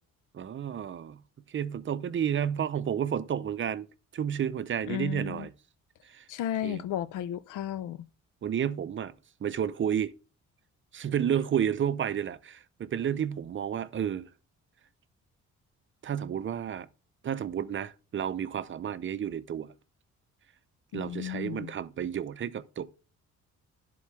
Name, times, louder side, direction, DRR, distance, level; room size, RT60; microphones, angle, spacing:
voice 1, 0.3-1.2 1.5-3.9 4.1-5.5 6.1-6.2 6.6-6.8 8.4-9.1 9.4-10.1 10.9-14.3 16.0-16.9 17.2-19.7 20.9-22.9, right 9 dB, 40° right, 0.6 m, -31 dB
voice 2, 4.9-5.5 6.3-8.0 20.9-21.7, left 11 dB, 85° left, 0.6 m, -34 dB
11.0 x 3.9 x 3.2 m
cardioid pair, 90°, 30 cm